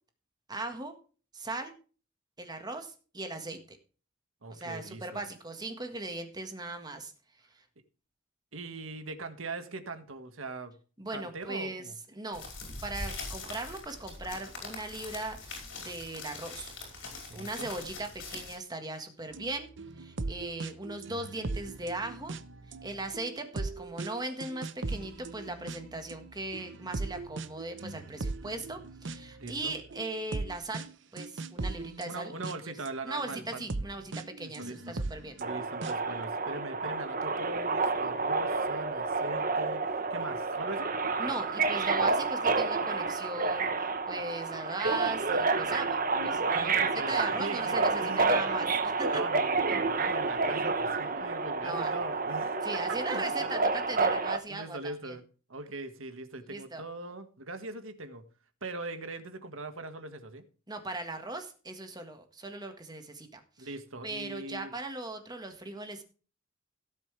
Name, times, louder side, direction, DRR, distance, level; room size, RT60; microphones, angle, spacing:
voice 1, 0.5-1.0 1.3-1.7 2.4-3.8 4.5-7.1 7.5-7.6 11.0-12.4 12.8-17.1 17.3-19.7 20.0-22.3 22.8-32.3 32.6-32.8 33.0-35.3 41.2-49.2 49.7-49.8 51.6-51.9 52.6-55.2 56.5-56.8 60.7-63.7 64.0-66.0, right 2 dB, 20° right, 6 dB, 1.6 m, -39 dB
voice 2, 4.4-5.2 8.5-10.7 11.1-11.9 17.3-17.7 29.4-29.7 32.1-33.6 34.4-35.0 35.4-40.9 46.5-47.1 47.4-48.6 49.0-52.6 52.9-53.6 54.5-55.2 55.5-58.2 58.6-60.4 63.6-64.7, right 2 dB, 90° right, 8 dB, 1.7 m, -41 dB
sound 1, 12.3-18.6, left 3 dB, 65° left, 5.3 m, -42 dB
sound 2, 19.3-32.9 33.3-36.2, right 3 dB, 65° right, 0.8 m, -39 dB
Subway metro underground, 35.4-54.4, right 4 dB, 45° right, 1.2 m, -29 dB
18.0 x 7.5 x 3.3 m, 0.37 s
head